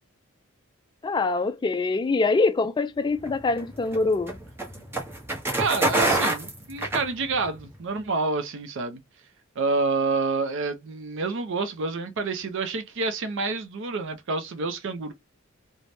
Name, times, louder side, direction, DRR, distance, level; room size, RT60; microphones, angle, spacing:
voice 1, 1.0-4.4, left 3 dB, 20° left, 0.3 m, -24 dB
sound 1, 3.2-7.6, right 2 dB, 10° right, 0.8 m, -27 dB
voice 2, 5.6-9.0 9.6-15.1, right 3 dB, 60° right, 0.5 m, -28 dB
3.2 x 2.1 x 2.6 m
head